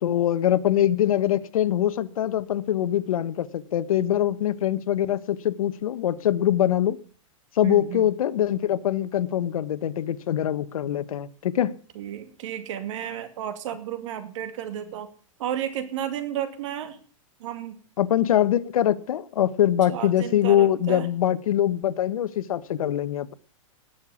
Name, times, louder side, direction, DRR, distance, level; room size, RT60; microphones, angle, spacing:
voice 1, 0.0-7.0 7.6-11.8 18.0-23.3, left 11 dB, 85° left, 1.1 m, -23 dB
voice 2, 7.6-8.0 12.0-15.1 15.4-17.0 17.4-17.8 19.9-21.1, right 10 dB, 60° right, 2.4 m, -32 dB
19.0 x 6.7 x 7.2 m
supercardioid pair, 145°, 18 cm